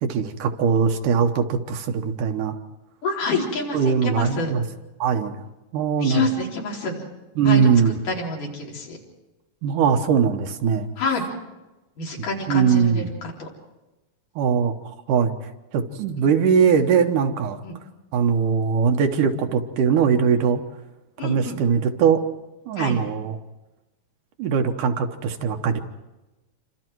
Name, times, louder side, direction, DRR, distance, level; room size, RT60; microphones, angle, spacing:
voice 1, 0.0-2.6 3.7-4.6 5.0-5.4 5.7-6.3 7.4-7.9 9.6-10.9 12.2-13.1 14.4-14.7 15.1-15.3 15.7-17.6 18.1-20.6 21.2-22.3 22.7-23.4 24.4-25.8, right 6 dB, 70° right, 5 dB, 2.6 m, -21 dB
voice 2, 3.0-4.6 6.0-7.0 7.5-7.7 8.1-9.0 11.0-11.2 12.0-13.5 16.2-16.3 17.6-17.7 21.2-21.6 22.8-23.0, left 3 dB, 65° left, -1 dB, 5.3 m, -27 dB
28.0 x 25.5 x 4.7 m, 1.0 s
omnidirectional pair, 4.0 m